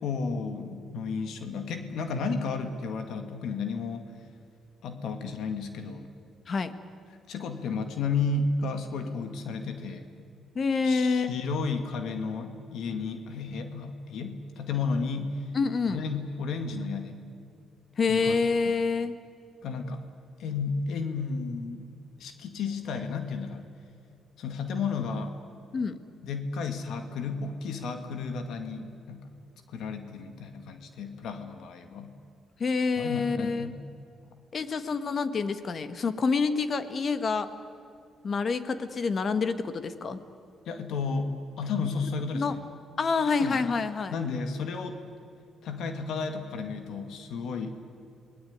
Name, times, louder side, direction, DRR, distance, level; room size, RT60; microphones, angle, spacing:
voice 1, 0.0-4.1 4.8-6.1 7.3-10.1 10.8-15.4 15.9-17.3 18.1-18.3 19.6-20.0 20.4-21.9 22.2-23.6 24.4-25.4 26.2-29.2 29.7-32.1 33.0-33.8 40.7-42.6 43.4-43.6 44.1-45.0 45.6-47.8, left 4 dB, 75° left, 7 dB, 2.1 m, -32 dB
voice 2, 10.5-11.3 15.5-16.0 18.0-19.1 25.7-26.0 32.6-33.7 34.5-37.5 38.2-40.2 42.3-42.6 43.0-44.1, left 4 dB, 45° left, 11 dB, 1.6 m, -27 dB
27.0 x 19.5 x 9.6 m, 2.4 s
cardioid pair, 90°, 0 cm